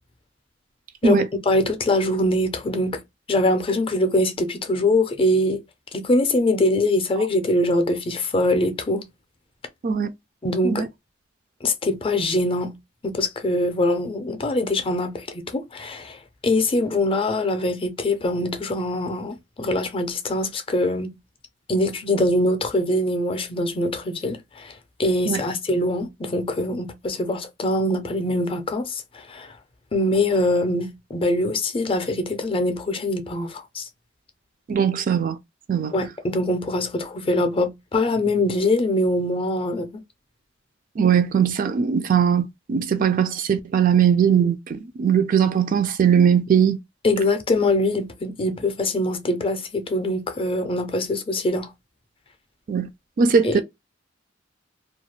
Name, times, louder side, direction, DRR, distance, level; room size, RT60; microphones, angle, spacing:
voice 1, 1.0-3.0 3.3-5.6 5.9-9.1 10.4-10.8 11.6-12.8 13.0-21.2 21.7-24.7 25.0-29.5 29.9-33.9 35.9-40.0 47.0-51.7 53.4-53.6, left 1 dB, 30° left, 0.5 m, -23 dB
voice 2, 34.7-35.4 35.7-35.9 41.0-46.8 52.7-52.9 53.2-53.6, right 7 dB, 45° right, 0.3 m, -20 dB
2.3 x 2.2 x 3.0 m
head